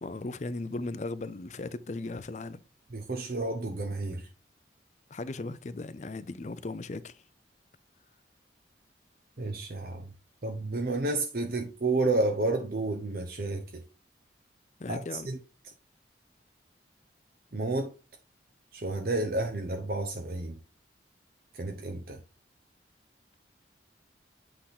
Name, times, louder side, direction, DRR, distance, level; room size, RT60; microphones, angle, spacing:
voice 1, 0.0-2.6 5.1-7.2 14.8-15.3, left 2 dB, 40° left, 0.5 m, -37 dB
voice 2, 2.9-4.3 9.4-10.1 10.4-13.8 14.9-15.4 17.5-17.9 18.7-20.6 21.5-22.2, right 2 dB, 55° right, 0.8 m, -31 dB
7.9 x 3.7 x 4.1 m
head